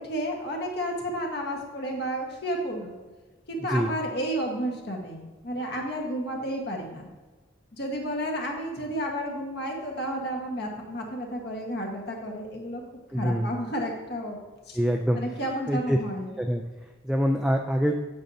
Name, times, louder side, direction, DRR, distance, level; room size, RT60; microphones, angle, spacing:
voice 1, 0.0-3.0 3.5-7.1 7.7-12.8 13.1-14.4 14.7-14.8 15.2-16.3, equal, 55° left, 1 dB, 1.4 m, -31 dB
voice 2, 13.1-13.5 14.7-15.4 15.7-16.0 16.4-17.9, equal, 5° right, 2 dB, 0.3 m, -25 dB
8.7 x 7.8 x 2.7 m, 1.3 s
head